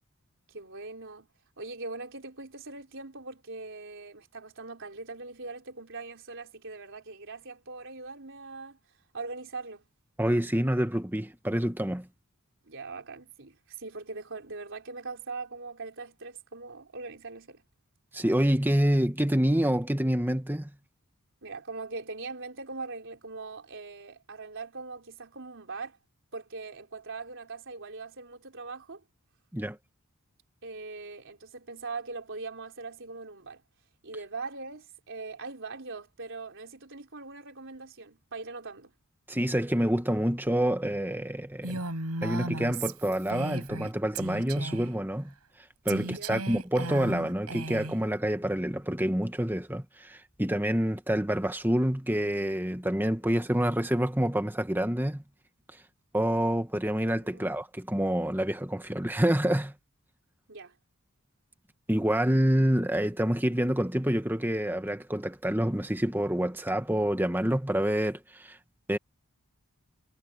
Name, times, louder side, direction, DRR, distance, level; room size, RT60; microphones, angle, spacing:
voice 1, 0.5-1.3 1.6-8.8 9.1-9.9 12.7-17.6 21.4-26.0 26.3-29.0 30.6-33.6 34.0-38.9 46.1-46.4 57.1-57.6 60.5-60.7, right 3 dB, 60° right, 4.4 m, -41 dB
voice 2, 10.2-12.1 18.1-20.7 29.5-29.8 39.3-41.8 42.2-45.3 45.8-55.2 56.1-59.7 61.9-68.6 68.9-69.0, right 1 dB, 10° right, 1.6 m, -27 dB
Female speech woman speaking, 41.6-43.9 44.1-44.9 45.9-48.0, right 2 dB, 85° right, 6.6 m, -36 dB
head